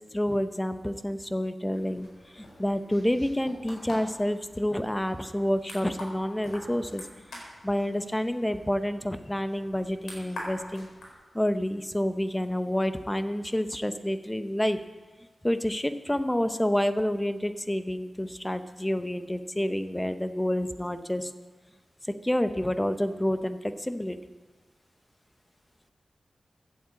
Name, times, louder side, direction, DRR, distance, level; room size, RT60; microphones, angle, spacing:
voice 1, 0.1-2.1 2.3-7.1 7.3-10.9 11.3-14.8 15.4-21.3 22.2-24.2, left 1 dB, 10° left, 10 dB, 0.9 m, -28 dB
sound 1, 1.7-11.1, left 1 dB, 80° left, 4.5 m, -46 dB
12.5 x 8.0 x 8.6 m, 1.3 s
cardioid pair, 55°, 0 cm